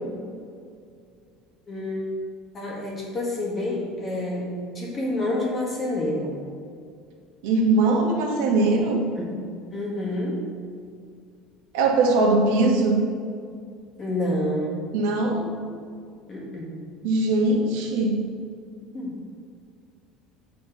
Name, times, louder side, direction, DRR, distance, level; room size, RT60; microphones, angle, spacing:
voice 1, 1.7-2.2 2.5-6.4 9.2-9.4 9.7-10.4 14.0-14.8 16.3-16.8 18.9-19.2, left 1 dB, 20° left, -3 dB, 1.7 m, -28 dB
voice 2, 7.4-9.1 11.7-13.0 14.9-15.4 17.0-18.2, right 2 dB, 80° right, 0 dB, 1.4 m, -21 dB
7.4 x 4.2 x 5.9 m, 2.3 s
cardioid pair, 170°, 0 cm